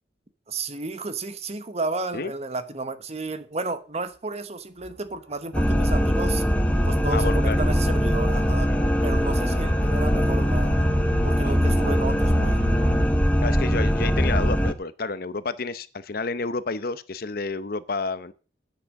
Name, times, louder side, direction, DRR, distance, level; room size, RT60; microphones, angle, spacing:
voice 1, 0.5-6.4 6.8-8.7 9.0-10.8 11.2-12.6, right 3 dB, 35° right, 1.0 m, -32 dB
sound 1, 4.8-4.9 5.3-5.4 5.9-6.0 6.9-13.1, left 1 dB, 70° right, 1.8 m, -30 dB
sound 2, 5.5-14.7, equal, 5° left, 1.1 m, -22 dB
voice 2, 7.1-7.6 8.7-8.8 11.4-11.5 13.4-18.3, left 3 dB, 55° left, 0.8 m, -30 dB
10.0 x 8.4 x 6.4 m
head